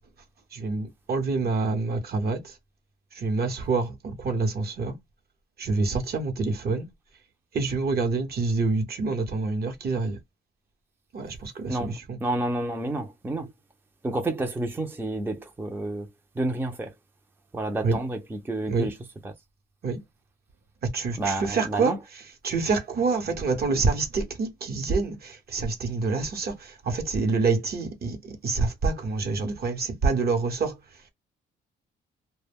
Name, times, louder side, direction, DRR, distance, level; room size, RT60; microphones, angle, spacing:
voice 1, 0.5-2.4 3.2-5.0 5.6-6.9 7.5-10.2 11.1-11.9 17.8-18.0 18.7-18.9 19.8-20.0 20.9-21.9 22.4-26.5 26.8-30.7, right 4 dB, 50° right, 0.9 m, -26 dB
voice 2, 11.7-13.5 14.0-16.1 16.4-16.9 17.5-19.0 19.2-19.3 21.2-22.0, right 2 dB, 10° right, 0.5 m, -30 dB
2.2 x 2.1 x 3.4 m
cardioid pair, 90°, 20 cm